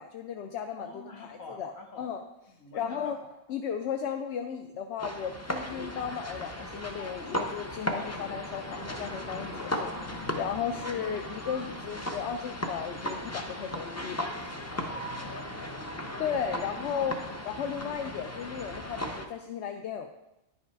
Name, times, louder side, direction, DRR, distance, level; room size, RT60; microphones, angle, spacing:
voice 1, 0.0-0.9 1.2-1.7 2.0-2.2 2.7-3.2 3.5-14.5 16.2-17.2 17.4-20.1, left 7 dB, 65° left, 6 dB, 0.8 m, -35 dB
voice 2, 0.8-2.1 2.5-3.2 7.8-8.2 9.5-9.9 10.6-10.8 14.7-16.3 16.7-16.8 17.2-17.3 17.6-17.8, left 2 dB, 85° left, 1 dB, 1.7 m, -48 dB
sound 1, 5.0-19.3, left 1 dB, 20° left, 0.4 m, -36 dB
10.5 x 5.6 x 4.6 m, 0.93 s
omnidirectional pair, 1.4 m